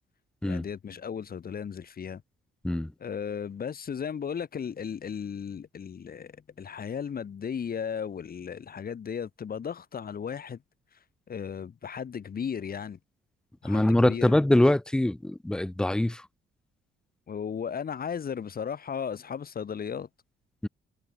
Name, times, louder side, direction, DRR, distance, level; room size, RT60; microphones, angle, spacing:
voice 1, 0.4-2.2 3.0-10.6 11.3-13.0 13.6-14.3 17.3-20.1, left 7 dB, 50° left, 4.0 m, -35 dB
voice 2, 13.6-16.2 20.6-20.7, left 1 dB, 5° left, 0.4 m, -23 dB
cardioid pair, 90°, 20 cm